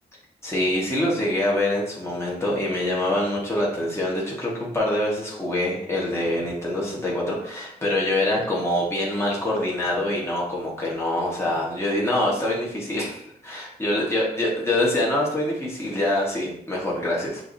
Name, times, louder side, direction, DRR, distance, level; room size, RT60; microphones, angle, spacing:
voice 1, 0.4-17.4, left 1 dB, 15° left, -4 dB, 1.3 m, -25 dB
6.8 x 2.8 x 2.6 m, 0.71 s
wide cardioid pair, 110°, 17 cm